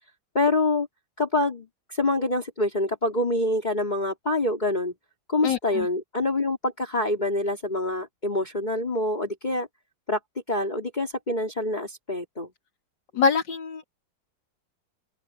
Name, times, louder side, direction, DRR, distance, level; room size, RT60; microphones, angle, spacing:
voice 1, 0.3-0.9 1.2-4.9 5.3-9.7 10.1-10.2 10.5-12.5, left 2 dB, 25° left, 3.7 m, -26 dB
voice 2, 5.4-5.9 13.1-13.8, left 5 dB, 75° left, 2.9 m, -24 dB
open air
omnidirectional pair, 2.0 m